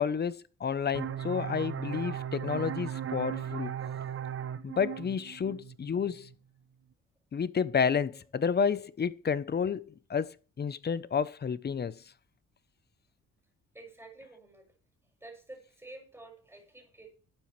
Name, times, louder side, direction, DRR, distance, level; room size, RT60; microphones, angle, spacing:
voice 1, 0.0-3.8 4.6-6.3 7.3-12.0, left 6 dB, 35° left, 0.8 m, -30 dB
sound 1, 0.9-6.3, right 9 dB, 45° right, 0.8 m, -37 dB
voice 2, 13.7-14.8 15.2-17.1, right 2 dB, 10° right, 6.0 m, -50 dB
11.5 x 9.2 x 3.3 m
cardioid pair, 90°, 30 cm